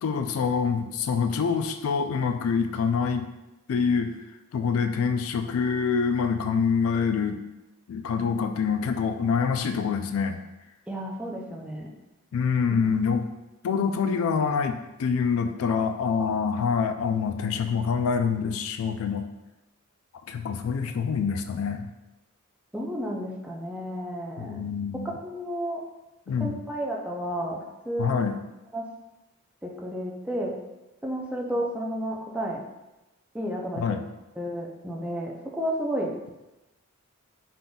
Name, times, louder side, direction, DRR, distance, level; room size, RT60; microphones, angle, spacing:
voice 1, 0.0-3.3 3.7-4.2 4.5-7.4 7.9-10.4 12.3-13.3 13.6-19.2 20.3-21.9 24.4-25.1 26.3-26.6 28.0-28.4 33.8-34.0, left 6 dB, 70° left, 7 dB, 0.3 m, -26 dB
voice 2, 10.9-11.9 12.7-12.8 22.7-24.6 25.2-25.8 26.4-28.1 28.7-28.9 29.6-30.5 31.0-32.6 33.3-33.8 34.4-36.1, equal, 5° right, -2 dB, 0.4 m, -32 dB
3.8 x 3.7 x 2.2 m, 1.0 s
head